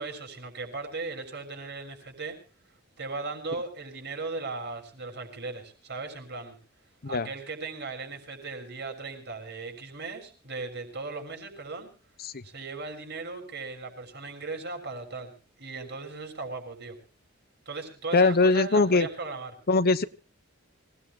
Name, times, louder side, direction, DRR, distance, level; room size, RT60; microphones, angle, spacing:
voice 1, 0.0-2.4 3.0-6.6 7.0-11.9 12.4-15.3 15.6-17.0 17.6-19.5, right 3 dB, 55° right, 5 dB, 6.6 m, -37 dB
voice 2, 18.1-19.1 19.7-20.0, left 3 dB, 50° left, 13 dB, 1.1 m, -21 dB
26.5 x 18.5 x 2.5 m, 0.36 s
head